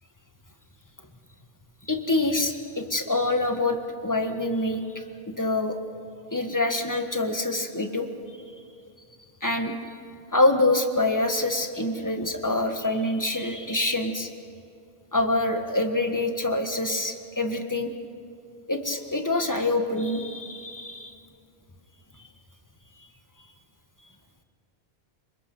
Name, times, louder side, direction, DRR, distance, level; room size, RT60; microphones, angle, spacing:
voice 1, 1.9-5.8 6.3-8.1 9.4-9.7 10.3-14.3 15.1-17.9 18.7-21.1, left 2 dB, 20° left, 5 dB, 1.5 m, -26 dB
29.0 x 21.0 x 6.1 m, 2.4 s
omnidirectional pair, 1.1 m